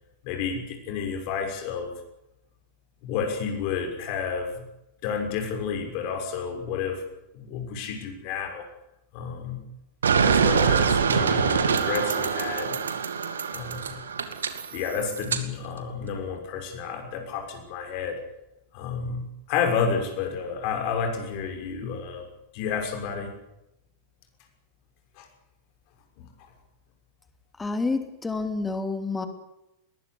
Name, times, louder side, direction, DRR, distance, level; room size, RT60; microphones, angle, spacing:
voice 1, 0.2-1.9 3.0-4.7 5.0-7.0 7.3-8.7 9.1-9.7 10.2-12.8 13.5-14.1 14.7-18.2 18.7-22.2 22.5-23.3 25.2-25.3 26.2-26.3, left 6 dB, 45° left, 4 dB, 6.3 m, -30 dB
sound 1, 10.0-15.4, right 6 dB, 70° right, 2.2 m, -24 dB
voice 2, 27.6-29.3, left 3 dB, 10° left, 7 dB, 2.7 m, -28 dB
21.5 x 20.0 x 8.8 m, 0.89 s
figure-of-eight pair, 90°, 0 cm